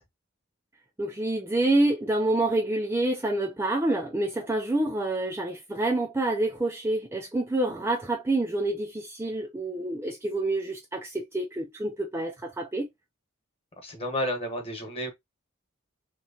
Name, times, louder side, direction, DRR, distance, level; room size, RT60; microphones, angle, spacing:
voice 1, 1.0-12.9, right 2 dB, 10° right, 0.4 m, -27 dB
voice 2, 13.8-15.1, equal, 30° left, 1.2 m, -31 dB
3.1 x 2.9 x 2.7 m
head